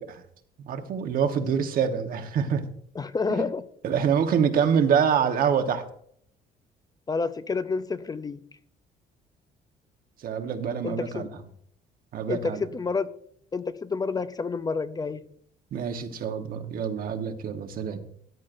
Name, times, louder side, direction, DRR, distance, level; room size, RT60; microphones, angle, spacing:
voice 1, 0.6-2.6 3.4-3.5 3.8-5.8 10.2-11.3 12.1-12.6 15.7-18.0, right 7 dB, 60° right, 6 dB, 1.2 m, -25 dB
voice 2, 2.9-3.7 7.1-8.4 10.8-11.3 12.3-13.1 13.5-15.2, left 4 dB, 20° left, 13 dB, 0.5 m, -29 dB
13.5 x 9.4 x 2.6 m, 0.65 s
cardioid pair, 110°, 17 cm